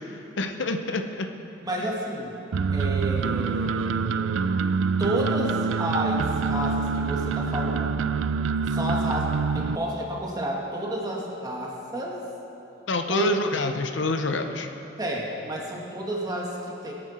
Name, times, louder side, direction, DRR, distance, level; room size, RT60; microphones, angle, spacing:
voice 1, 0.4-1.3 12.9-14.7, left 2 dB, 70° left, 6 dB, 0.8 m, -27 dB
voice 2, 1.6-2.4 2.7-4.4 5.0-8.1 8.7-12.2 13.1-13.3 15.0-16.9, right 1 dB, 20° right, -2 dB, 2.0 m, -31 dB
sound 1, 2.5-9.8, right 5 dB, 80° right, 0.4 m, -26 dB
22.0 x 8.9 x 4.3 m, 2.9 s
head